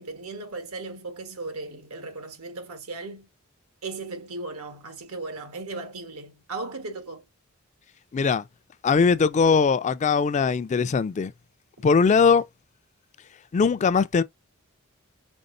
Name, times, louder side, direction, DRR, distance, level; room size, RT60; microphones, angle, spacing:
voice 1, 0.0-3.3 3.8-7.3, right 3 dB, 90° right, 1.4 m, -37 dB
voice 2, 8.1-8.4 8.8-11.3 11.8-12.4 13.5-14.2, left 5 dB, 35° left, 0.3 m, -20 dB
5.3 x 3.7 x 2.6 m
head